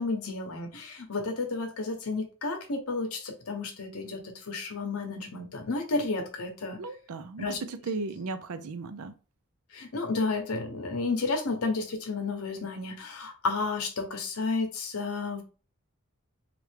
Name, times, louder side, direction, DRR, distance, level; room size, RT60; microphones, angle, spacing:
voice 1, 0.0-6.8 7.4-7.6 9.7-15.4, left 3 dB, 80° left, 0.8 m, -32 dB
voice 2, 6.8-9.1, right 3 dB, 85° right, 0.5 m, -36 dB
3.2 x 2.4 x 3.3 m
head